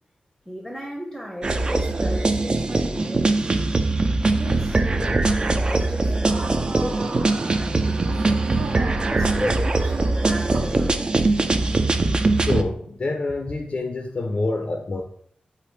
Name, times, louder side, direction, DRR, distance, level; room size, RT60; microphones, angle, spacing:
voice 1, 0.5-3.4 4.3-8.4 9.1-11.1, equal, ahead, 0 dB, 0.7 m, -35 dB
sound 1, 1.4-12.6, right 2 dB, 30° right, 0.4 m, -22 dB
sound 2, 3.6-10.6, right 3 dB, 80° right, 0.6 m, -37 dB
voice 2, 12.4-15.0, left 2 dB, 40° left, 4 dB, 0.4 m, -27 dB
4.9 x 2.4 x 4.3 m, 0.62 s
wide cardioid pair, 145°, 3 cm